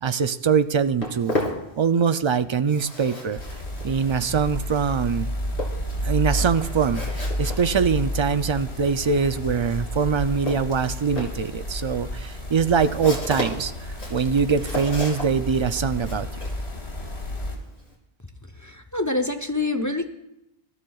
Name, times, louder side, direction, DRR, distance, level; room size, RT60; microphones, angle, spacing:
voice 1, 0.0-1.3 1.8-3.4 3.8-5.3 6.0-13.7 14.1-16.3, right 6 dB, 50° right, 11 dB, 0.3 m, -23 dB
Walk footsteps, 0.6-2.3 2.5-17.9, left 1 dB, 60° left, 3.3 m, -35 dB
sound 1, 3.4-17.6, equal, 85° left, 3.6 m, -31 dB
voice 2, 18.6-20.1, left 2 dB, 20° left, 7 dB, 0.7 m, -26 dB
25.5 x 13.0 x 2.4 m, 0.83 s
omnidirectional pair, 1.1 m